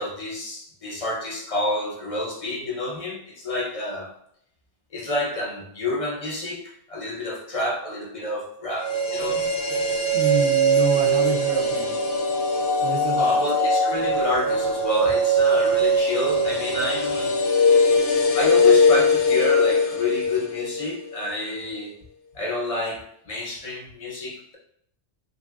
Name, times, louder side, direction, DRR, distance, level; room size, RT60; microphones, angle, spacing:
voice 1, 0.0-4.1 4.9-9.5 13.2-17.4 18.3-21.9 22.3-24.6, left 2 dB, 40° left, -1 dB, 0.6 m, -29 dB
sound 1, 8.7-20.8 21.1-21.2, left 1 dB, 75° left, 0.9 m, -21 dB
voice 2, 10.1-12.0 12.8-13.4, right 6 dB, 65° right, 1 dB, 0.7 m, -28 dB
3.1 x 2.7 x 2.3 m, 0.69 s
omnidirectional pair, 1.2 m